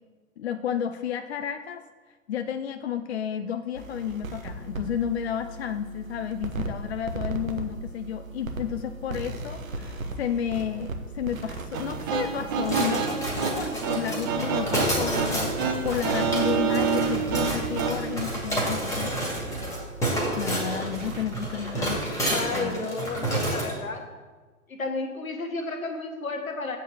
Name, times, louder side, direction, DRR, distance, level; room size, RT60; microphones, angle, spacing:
voice 1, 0.4-1.8 2.3-19.1 20.4-22.8, left 9 dB, 50° left, 9 dB, 0.5 m, -32 dB
sound 1, 3.7-21.9, right 2 dB, 70° right, 1.2 m, -38 dB
sound 2, 11.7-18.0, right 5 dB, 15° right, 0.4 m, -28 dB
sound 3, 12.7-23.8, right 1 dB, 5° left, 2.0 m, -29 dB
voice 2, 22.3-24.0 24.7-26.8, left 3 dB, 75° left, 4 dB, 1.6 m, -32 dB
7.9 x 4.6 x 7.1 m, 1.4 s
figure-of-eight pair, 115°, 42 cm